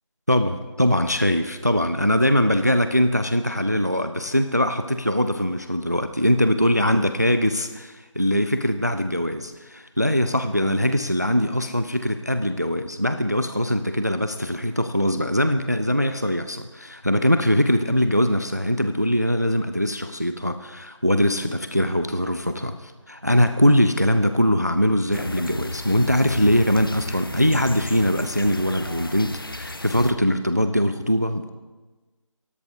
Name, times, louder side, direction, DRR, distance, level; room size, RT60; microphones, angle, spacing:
voice 1, 0.3-31.5, equal, 30° right, 10 dB, 0.5 m, -22 dB
sound 1, 25.1-30.1, left 2 dB, 45° left, 0.8 m, -34 dB
23.0 x 17.5 x 2.7 m, 1.3 s
figure-of-eight pair, 180°, 17 cm